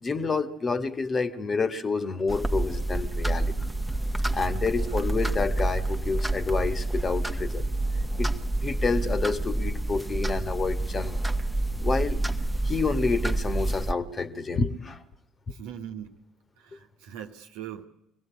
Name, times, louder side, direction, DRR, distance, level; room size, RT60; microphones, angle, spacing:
voice 1, 0.0-3.5 4.3-7.7 8.2-8.3 8.6-11.2 11.8-12.2 12.6-15.0, left 4 dB, 30° left, 11 dB, 1.6 m, -28 dB
sound 1, 2.3-13.9, right 2 dB, 5° right, 1.3 m, -28 dB
voice 2, 4.7-5.1 15.5-16.2 16.6-17.8, right 9 dB, 70° right, 5 dB, 1.3 m, -41 dB
24.0 x 17.5 x 8.5 m, 0.84 s
figure-of-eight pair, 55°, 0 cm